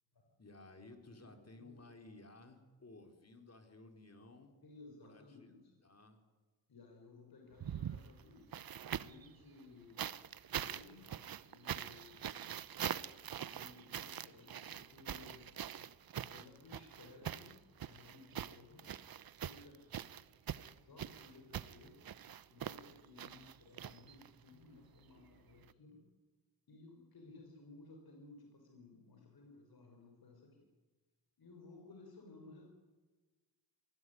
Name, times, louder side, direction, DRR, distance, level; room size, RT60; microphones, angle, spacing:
voice 1, 0.4-4.5 5.0-5.4 5.8-6.2, left 2 dB, 35° left, 5 dB, 4.9 m, -56 dB
voice 2, 1.2-1.8 4.6-5.8 6.7-8.6 9.0-10.2 10.5-12.6 13.5-15.6 16.3-18.9 19.4-20.1 20.8-21.9 22.5-26.0 26.7-30.7 31.4-32.6, left 3 dB, 55° left, 1 dB, 6.0 m, -58 dB
sound 1, 7.5-9.3 10.0-24.5 25.6-25.7, right 9 dB, 50° right, 1.0 m, -44 dB
24.0 x 19.0 x 9.8 m, 1.3 s
cardioid pair, 70°, 44 cm